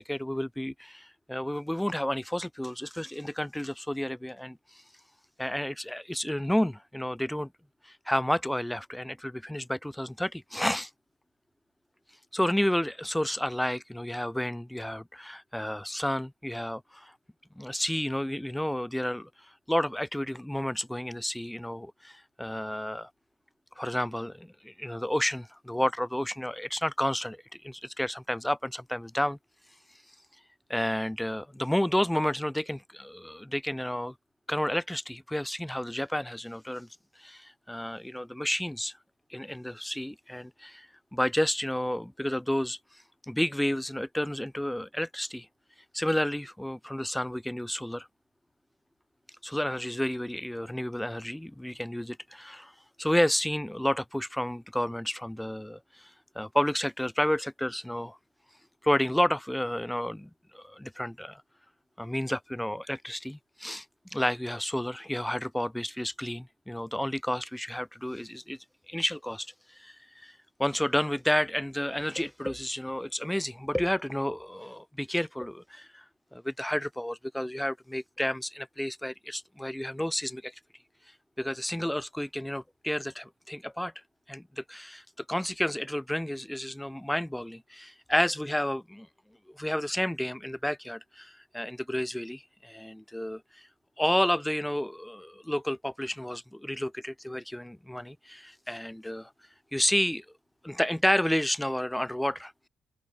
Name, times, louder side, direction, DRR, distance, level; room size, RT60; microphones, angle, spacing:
voice 1, 0.0-4.8 5.4-7.5 7.8-10.9 12.3-17.1 17.6-19.3 19.7-23.1 23.8-29.4 30.7-34.1 34.5-36.9 37.2-38.9 39.3-42.8 43.3-45.5 45.9-48.1 49.4-52.7 53.0-58.2 58.8-61.4 62.0-63.8 64.1-68.6 68.9-69.5 69.7-70.3 70.6-76.0 76.3-80.5 81.4-83.9 84.3-89.1 89.5-93.7 94.0-99.3 99.7-100.2 100.6-102.5, left 1 dB, 5° left, 0.7 m, -31 dB
open air
cardioid pair, 90°, 0 cm